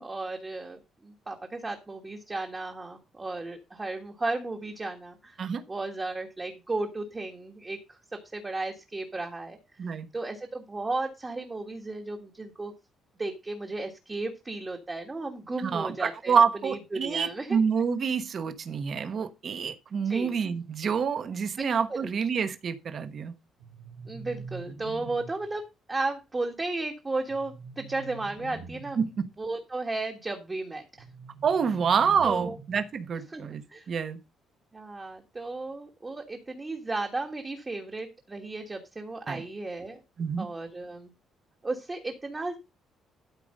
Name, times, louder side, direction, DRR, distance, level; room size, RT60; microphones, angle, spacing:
voice 1, 0.0-5.4 5.7-9.6 9.9-12.7 13.2-17.6 20.0-20.3 21.9-22.1 24.1-25.6 25.9-29.0 29.4-30.8 32.2-32.6 33.3-33.4 33.7-33.9 34.7-40.0 40.4-41.1 41.6-42.6, right 2 dB, 15° right, 1.5 m, -34 dB
voice 2, 15.6-23.3 29.0-29.3 31.4-33.6 33.9-34.2 39.3-39.4 40.2-40.5, right 6 dB, 35° right, 1.1 m, -27 dB
sound 1, 23.6-25.6 27.3-29.2 31.0-33.0, right 3 dB, 65° right, 2.8 m, -44 dB
12.5 x 5.0 x 5.3 m
cardioid pair, 175°, 0 cm